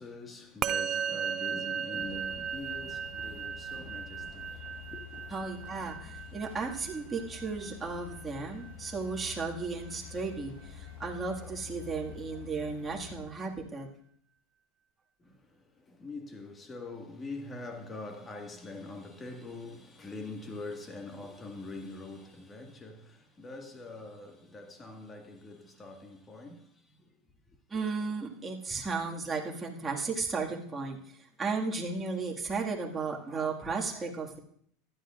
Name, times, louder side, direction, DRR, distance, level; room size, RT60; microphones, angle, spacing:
voice 1, 0.0-4.6 4.9-5.2 15.2-27.2 27.5-27.8, left 2 dB, 20° left, 1.9 m, -44 dB
Musical instrument, 0.6-10.2, right 8 dB, 40° right, 0.4 m, -37 dB
sound 1, 2.0-13.2, left 7 dB, 75° left, 4.6 m, -48 dB
voice 2, 5.3-13.9 27.7-31.0 31.4-34.4, right 4 dB, 20° right, 2.0 m, -34 dB
15.5 x 11.0 x 2.5 m
hypercardioid pair, 105°, 0 cm